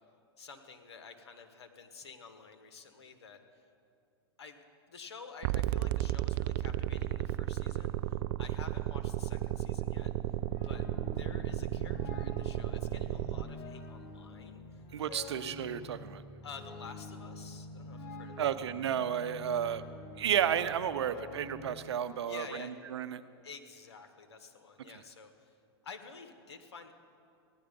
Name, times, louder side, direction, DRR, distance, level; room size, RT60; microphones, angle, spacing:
voice 1, 0.4-3.7 4.4-10.1 10.6-14.8 15.1-15.3 16.4-18.5 22.3-22.7 23.4-25.6 25.8-26.9, left 5 dB, 90° left, 7 dB, 1.4 m, -50 dB
sound 1, 5.4-13.4, right 14 dB, 55° right, 0.4 m, -33 dB
sound 2, 10.0-21.7, left 2 dB, 60° left, 1.6 m, -47 dB
voice 2, 14.9-16.2 18.4-19.8 20.2-23.2, right 9 dB, 80° right, 13 dB, 0.7 m, -32 dB
16.0 x 11.0 x 5.2 m, 2.5 s
hypercardioid pair, 115°, 14 cm